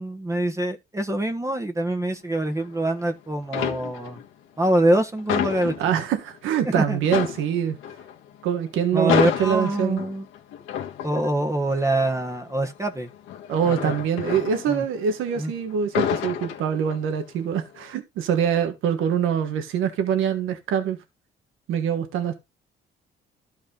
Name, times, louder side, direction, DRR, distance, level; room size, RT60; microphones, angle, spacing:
voice 1, 0.0-4.2 4.6-5.7 6.6-7.0 8.9-10.3 11.0-13.1 13.7-13.9 14.7-14.8 15.4-15.5, right 1 dB, 15° right, 1.3 m, -24 dB
sound 1, 2.4-3.1 3.4-4.3 4.6-6.4 6.7-6.8 7.0-15.4 15.7-17.2 17.6-17.9, left 9 dB, 90° left, 1.5 m, -30 dB
voice 2, 5.8-7.8 8.4-9.1 9.4-10.0 13.5-21.0 21.7-22.3, right 8 dB, 90° right, 1.5 m, -24 dB
12.5 x 4.8 x 3.9 m
cardioid pair, 90°, 20 cm